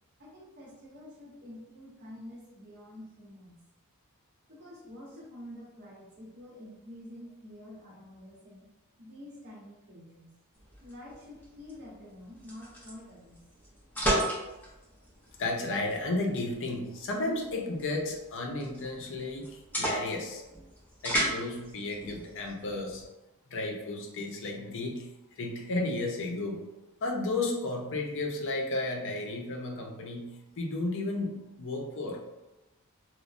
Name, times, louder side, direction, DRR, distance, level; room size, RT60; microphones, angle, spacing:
voice 1, 0.2-3.6 4.5-8.7 9.0-10.3 10.8-13.4, left 1 dB, 50° right, -5 dB, 0.8 m, -48 dB
sound 1, 10.5-23.0, right 1 dB, 10° left, 0.5 m, -36 dB
voice 2, 15.4-20.4 21.0-23.0 23.5-25.1 25.4-26.6 27.0-32.2, left 2 dB, 55° left, 1 dB, 0.5 m, -33 dB
3.0 x 2.0 x 2.4 m, 1.0 s
head